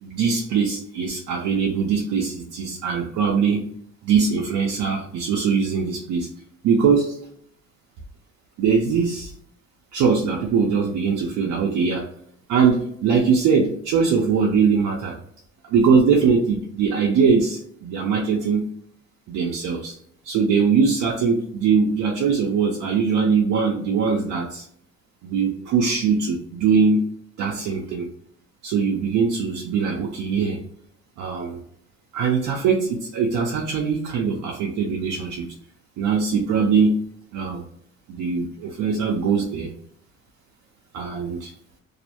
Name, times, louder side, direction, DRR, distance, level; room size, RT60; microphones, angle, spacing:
voice 1, 0.0-3.7 4.0-6.3 6.6-7.2 8.6-9.3 9.9-12.1 12.5-15.2 15.6-18.7 19.3-20.0 20.2-24.7 25.2-27.0 27.4-28.1 28.6-30.6 31.2-31.6 32.1-35.5 36.0-37.0 37.3-37.6 38.1-39.7 40.9-41.5, right 5 dB, 80° right, -1 dB, 0.5 m, -21 dB
2.4 x 2.1 x 2.8 m, 0.66 s
cardioid pair, 90°, 30 cm